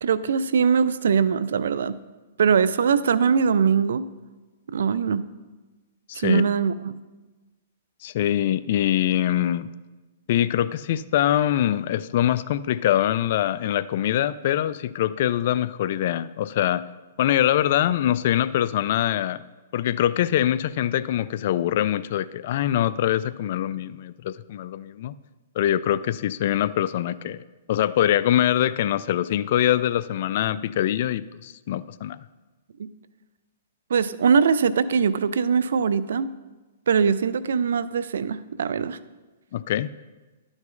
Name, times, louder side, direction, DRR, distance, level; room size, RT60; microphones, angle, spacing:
voice 1, 0.0-2.0 2.4-4.1 4.7-5.2 6.2-6.9 32.8-32.9 33.9-36.3 36.9-39.0, right 6 dB, 75° right, 16 dB, 0.4 m, -22 dB
voice 2, 6.1-6.4 8.0-9.7 10.3-16.9 17.2-19.4 19.7-25.1 25.6-27.4 27.7-32.2 39.5-39.9, left 12 dB, 55° left, 16 dB, 0.3 m, -23 dB
11.5 x 6.2 x 3.8 m, 1.2 s
hypercardioid pair, 130°, 0 cm